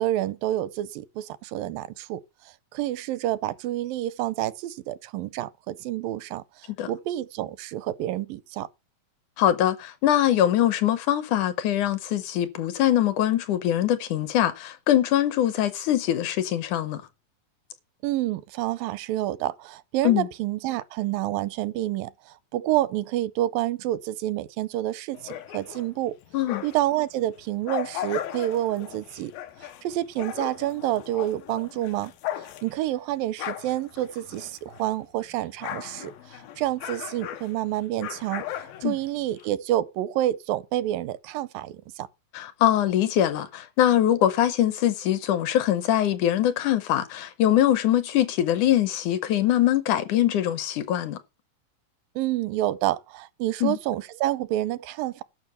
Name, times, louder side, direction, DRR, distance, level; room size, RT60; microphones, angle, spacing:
voice 1, 0.0-2.2 2.7-8.7 18.0-26.2 26.6-29.3 29.6-32.1 32.4-42.1 52.2-55.2, right 14 dB, 80° right, 2.4 m, -28 dB
voice 2, 9.4-17.0 20.0-20.3 26.3-26.6 38.8-39.0 42.3-51.2 53.6-53.8, left 11 dB, 70° left, 2.1 m, -23 dB
sound 1, 25.1-27.0 27.4-35.0 35.2-39.5, left 12 dB, 90° left, 2.8 m, -37 dB
11.5 x 6.0 x 6.6 m
omnidirectional pair, 4.0 m